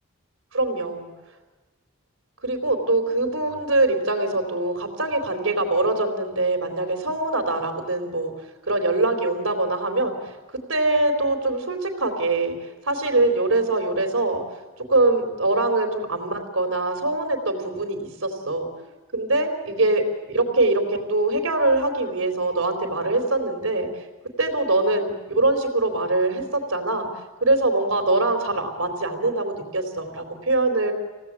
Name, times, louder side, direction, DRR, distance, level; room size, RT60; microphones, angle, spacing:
voice 1, 0.5-1.1 2.4-8.3 8.7-10.3 10.7-12.5 12.8-14.4 14.9-18.7 19.1-23.9 24.4-27.1 27.4-30.9, right 2 dB, 80° right, 5 dB, 4.0 m, -23 dB
26.0 x 17.5 x 9.0 m, 1.2 s
head